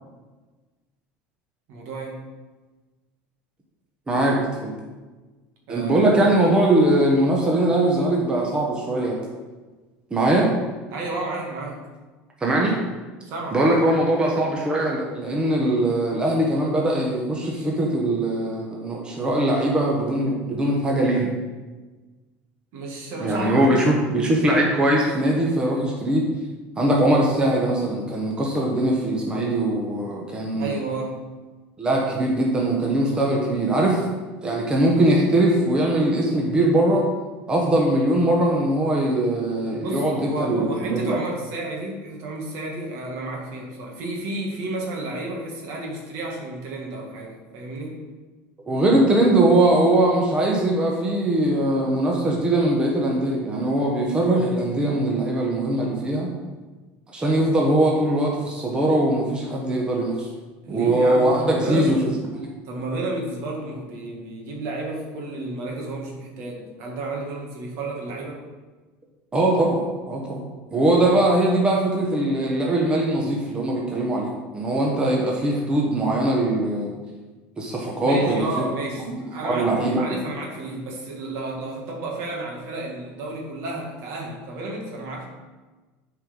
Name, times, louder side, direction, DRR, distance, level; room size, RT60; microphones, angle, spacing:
voice 1, 1.7-2.2 5.7-6.4 10.9-11.8 13.2-14.1 22.7-23.8 30.6-31.3 39.8-48.0 60.6-62.1 62.7-68.4 78.0-85.3, right 2 dB, 60° right, -1 dB, 2.2 m, -32 dB
voice 2, 4.1-4.7 5.7-9.2 10.1-10.5 12.4-12.8 13.5-21.3 23.2-26.3 26.8-30.8 31.8-34.0 34.4-37.1 37.5-41.2 48.7-56.3 57.1-60.3 60.7-62.1 62.4-62.5 69.3-70.4 70.7-76.9 77.6-78.5 79.1-80.0, right 1 dB, 15° right, -2 dB, 1.2 m, -21 dB
8.7 x 4.8 x 5.5 m, 1.3 s
supercardioid pair, 135°, 5 cm